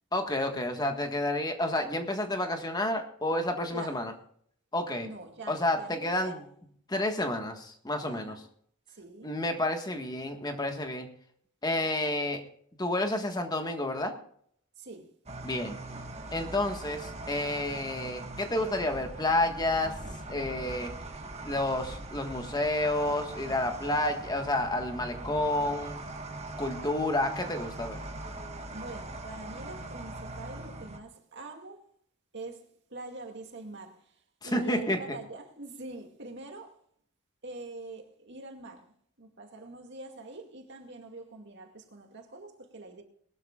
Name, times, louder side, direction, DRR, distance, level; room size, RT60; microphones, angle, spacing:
voice 1, 0.1-4.1 4.7-5.1 5.5-6.4 6.9-8.3 9.2-11.1 11.6-12.4 12.8-14.1 15.4-15.8 16.3-19.9 20.3-20.9 21.4-26.0 26.6-28.0 34.4-35.2, left 1 dB, 20° left, 1.5 m, -30 dB
voice 2, 5.0-6.4 8.1-8.4 8.9-9.3 14.8-15.1 28.7-31.8 32.3-36.8 37.4-43.0, right 2 dB, 55° right, 2.2 m, -45 dB
sound 1, 15.3-31.0, right 2 dB, 30° right, 1.4 m, -41 dB
21.0 x 12.0 x 2.4 m
head